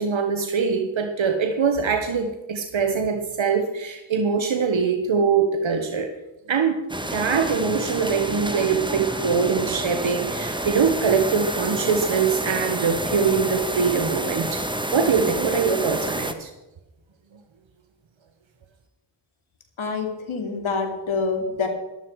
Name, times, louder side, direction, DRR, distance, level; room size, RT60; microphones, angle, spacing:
voice 1, 0.0-6.1 6.5-6.8 7.1-14.6 14.9-16.5, right 5 dB, 75° right, 5 dB, 1.3 m, -23 dB
sound 1, 6.9-16.3, right 1 dB, 10° right, 1.4 m, -29 dB
voice 2, 19.8-21.7, left 4 dB, 85° left, 3 dB, 2.9 m, -26 dB
14.0 x 12.5 x 4.8 m, 1.0 s
cardioid pair, 55°, 47 cm